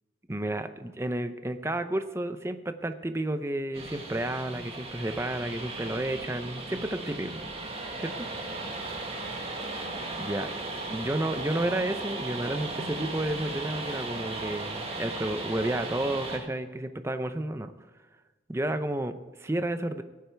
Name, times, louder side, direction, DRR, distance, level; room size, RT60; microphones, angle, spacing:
voice 1, 0.3-7.4 8.0-8.3 10.2-10.5 10.9-17.7 18.5-20.0, right 1 dB, 15° right, 9 dB, 0.6 m, -31 dB
sound 1, 3.7-16.4, right 2 dB, 30° right, 1.8 m, -36 dB
18.0 x 8.4 x 4.5 m, 1.3 s
head